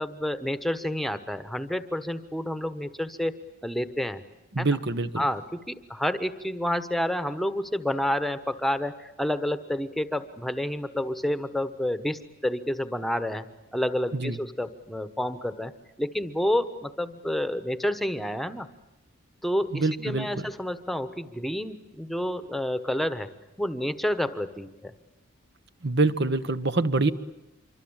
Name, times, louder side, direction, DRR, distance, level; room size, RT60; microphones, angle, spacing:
voice 1, 0.0-4.2 4.6-4.7 5.2-15.7 16.0-18.7 19.4-23.3 23.6-24.9, left 1 dB, ahead, 11 dB, 1.3 m, -29 dB
voice 2, 4.5-5.2 14.1-14.4 19.7-20.5 25.8-27.1, right 3 dB, 50° right, 12 dB, 1.3 m, -25 dB
26.5 x 24.5 x 8.9 m, 0.95 s
head